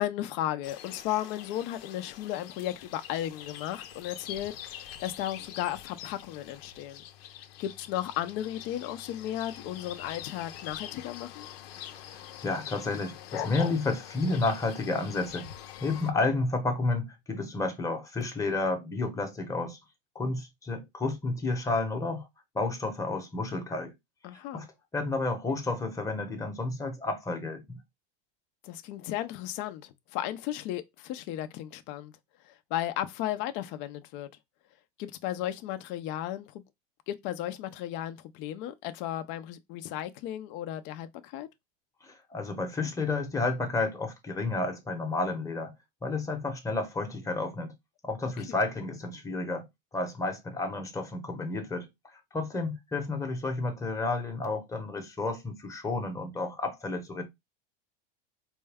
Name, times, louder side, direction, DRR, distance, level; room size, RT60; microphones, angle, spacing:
voice 1, 0.0-7.0 7.6-11.5 24.2-24.6 28.6-32.1 32.4-34.3 35.0-36.6 37.1-41.5 48.4-48.6, left 12 dB, 40° left, 0.5 m, -35 dB
sound 1, 0.6-16.1, left 10 dB, 80° left, 0.7 m, -44 dB
voice 2, 12.1-15.5 15.8-19.8 20.1-22.3 22.5-23.9 24.5-24.7 24.9-27.8 42.0-45.7 46.0-47.7 48.0-49.7 49.9-57.2, left 3 dB, 10° left, 0.9 m, -31 dB
4.3 x 2.2 x 3.4 m
supercardioid pair, 145°, 29 cm